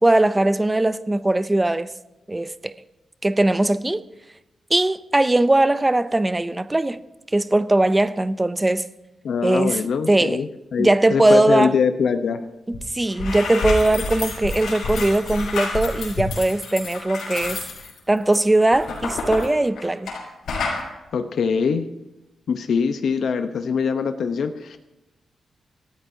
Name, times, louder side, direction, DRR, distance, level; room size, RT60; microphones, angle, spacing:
voice 1, 0.0-1.9 2.3-2.7 3.2-4.0 4.7-7.0 7.3-8.9 9.4-9.8 10.1-10.4 10.8-11.7 12.7-17.6 18.1-20.1, right 2 dB, 10° right, 0.5 m, -20 dB
voice 2, 9.2-12.4 21.1-21.9 22.5-24.8, left 6 dB, 60° left, 0.8 m, -23 dB
sound 1, 12.7-12.8 13.1-20.2 20.5-20.8, left 3 dB, 80° left, 5.9 m, -29 dB
27.0 x 13.5 x 2.8 m
wide cardioid pair, 180°, 0 cm